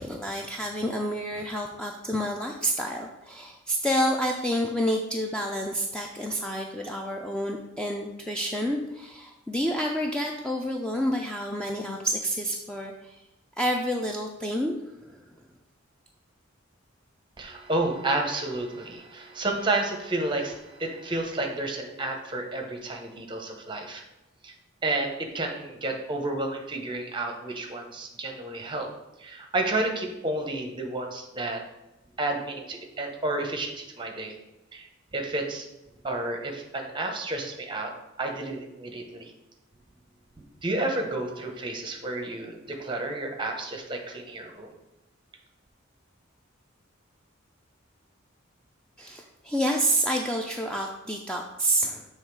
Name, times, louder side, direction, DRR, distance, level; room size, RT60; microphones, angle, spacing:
voice 1, 0.0-13.2 13.6-14.8 15.0-15.2 49.0-52.1, equal, 5° left, 1 dB, 0.3 m, -29 dB
voice 2, 17.4-24.0 24.4-24.5 24.8-28.9 29.2-31.6 32.2-34.3 34.7-34.9 35.1-35.7 36.0-37.9 38.2-39.3 40.6-44.7, right 2 dB, 25° right, 3 dB, 0.8 m, -31 dB
7.1 x 3.2 x 4.6 m, 0.95 s
head